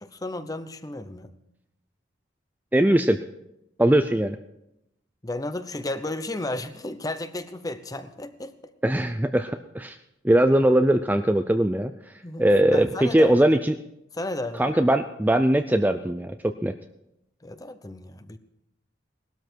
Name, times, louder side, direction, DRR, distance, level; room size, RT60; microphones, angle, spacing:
voice 1, 0.0-1.3 5.2-8.5 12.2-13.4 14.2-14.7 17.4-18.4, left 2 dB, 20° left, 11 dB, 0.8 m, -33 dB
voice 2, 2.7-3.2 3.8-4.4 8.8-10.0 10.2-11.9 12.4-13.8 14.6-16.7, right 1 dB, 10° right, 8 dB, 0.4 m, -20 dB
19.0 x 12.5 x 4.6 m, 0.85 s
head